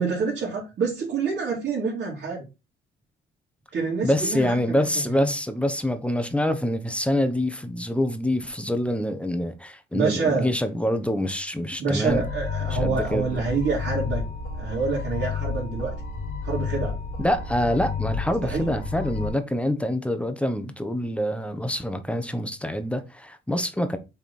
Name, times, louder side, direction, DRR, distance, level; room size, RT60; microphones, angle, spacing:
voice 1, 0.0-2.4 3.7-5.3 9.9-10.5 11.8-14.2 14.6-15.9 16.4-16.9 18.4-18.7, right 4 dB, 60° right, 3.0 m, -27 dB
voice 2, 4.0-12.2 12.7-13.4 17.2-24.0, left 1 dB, 5° left, 0.9 m, -26 dB
sound 1, 12.1-19.3, left 5 dB, 80° left, 2.0 m, -31 dB
5.9 x 3.8 x 4.3 m
cardioid pair, 90°, 20 cm